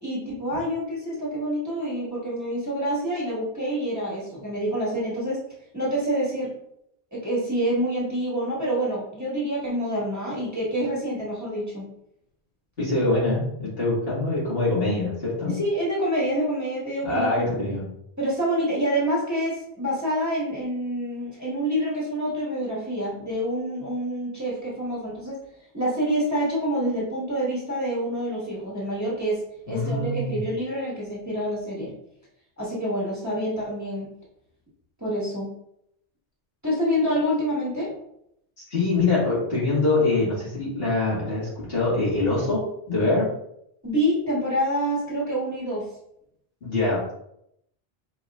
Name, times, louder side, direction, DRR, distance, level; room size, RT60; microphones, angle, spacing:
voice 1, 0.0-5.4 5.7-6.5 7.1-11.9 15.5-17.5 18.2-25.4 25.7-29.4 29.7-31.9 32.6-34.1 35.0-35.5 36.6-37.9 43.8-45.8, equal, 15° right, -7 dB, 1.5 m, -27 dB
voice 2, 12.8-15.5 17.0-17.9 29.7-30.4 38.7-42.6 42.9-43.3 46.6-47.2, left 2 dB, 70° left, -8 dB, 2.1 m, -24 dB
4.8 x 3.6 x 2.4 m, 0.76 s
omnidirectional pair, 1.0 m